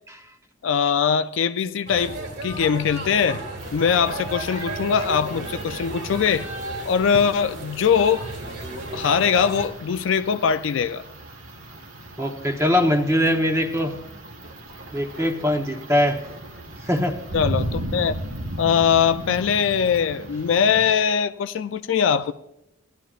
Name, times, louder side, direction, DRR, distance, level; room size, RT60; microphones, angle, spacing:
voice 1, 0.6-3.4 3.7-6.5 6.8-8.3 8.9-11.0 17.3-18.2 18.6-22.3, left 7 dB, 70° left, 0.4 m, -21 dB
sound 1, 1.9-9.7, right 2 dB, 60° right, 1.9 m, -33 dB
sound 2, 3.6-20.8, right 1 dB, 90° right, 1.4 m, -37 dB
voice 2, 12.2-14.0 14.9-16.2 16.8-17.2, left 1 dB, 15° right, 0.9 m, -21 dB
16.5 x 11.5 x 2.4 m
head